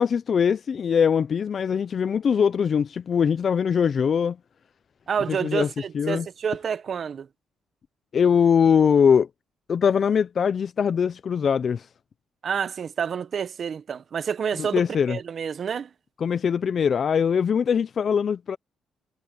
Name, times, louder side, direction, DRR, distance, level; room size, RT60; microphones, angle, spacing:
voice 1, 0.0-4.4 5.3-6.3 8.1-9.3 9.7-11.9 14.6-15.2 16.2-18.6, left 7 dB, 50° left, 0.6 m, -22 dB
voice 2, 5.1-7.3 12.4-15.9, right 7 dB, 50° right, 1.1 m, -29 dB
cardioid pair, 90°, 0 cm